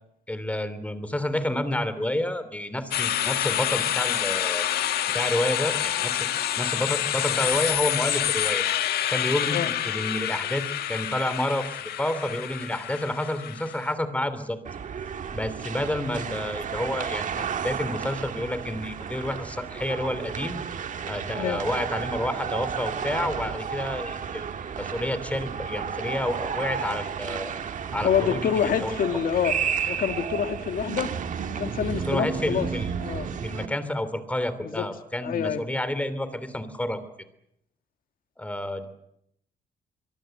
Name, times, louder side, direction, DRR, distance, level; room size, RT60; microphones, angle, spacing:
voice 1, 0.3-4.6 5.1-6.3 6.6-8.6 9.1-14.6 15.3-20.6 21.0-24.4 24.8-27.5 27.9-29.2 32.0-33.0 33.4-37.0 38.4-38.8, left 1 dB, 10° left, 12 dB, 3.0 m, -29 dB
sound 1, 2.9-13.9, left 11 dB, 90° left, 1.4 m, -27 dB
sound 2, 14.6-33.7, right 7 dB, 55° right, 1.9 m, -32 dB
voice 2, 28.0-29.6 29.9-31.2 31.6-32.7 33.0-33.3 34.6-34.9 35.2-35.6, left 8 dB, 65° left, 8 dB, 1.9 m, -26 dB
23.5 x 23.5 x 7.8 m, 0.76 s
cardioid pair, 130°, 16 cm